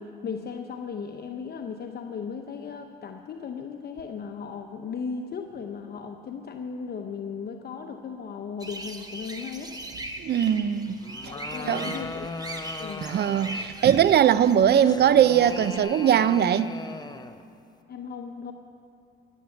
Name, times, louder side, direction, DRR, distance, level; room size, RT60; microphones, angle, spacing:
voice 1, 0.0-9.8 10.5-10.6 11.2-12.3 12.8-13.1 17.9-18.5, left 6 dB, 55° left, 0.8 m, -36 dB
sound 1, 8.6-15.8, right 1 dB, 20° right, 1.3 m, -40 dB
voice 2, 10.2-11.0 11.7-12.0 13.0-16.7, right 9 dB, 55° right, 0.6 m, -20 dB
sound 2, 11.0-13.8 14.8-17.4, left 3 dB, 20° left, 0.7 m, -38 dB
16.0 x 9.0 x 7.2 m
cardioid pair, 90°, 20 cm